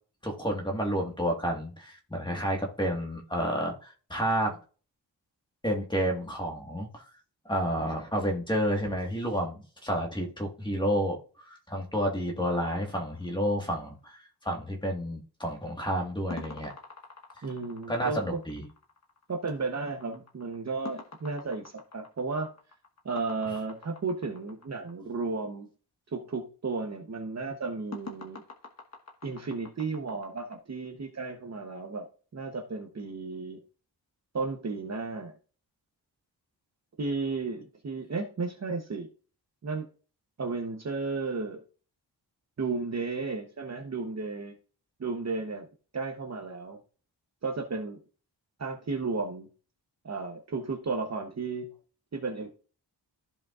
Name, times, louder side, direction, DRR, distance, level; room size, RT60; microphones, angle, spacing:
voice 1, 0.2-4.6 5.6-7.0 7.5-16.7 17.9-18.7, equal, 10° left, 1 dB, 1.5 m, -30 dB
sound 1, 12.7-14.1 16.3-24.9 27.9-30.6, left 3 dB, 40° left, 1.3 m, -47 dB
voice 2, 17.4-18.4 19.3-22.5 23.0-25.7 26.1-28.4 29.2-32.1 32.3-33.6 34.3-35.3 37.0-39.1 39.6-39.9 40.4-41.6 42.6-44.6 45.0-45.7 45.9-46.8 47.4-48.0 48.6-49.5 50.0-51.7 52.1-52.5, right 4 dB, 40° right, 3 dB, 0.9 m, -33 dB
14.0 x 5.1 x 2.4 m, 0.38 s
wide cardioid pair, 180°, 43 cm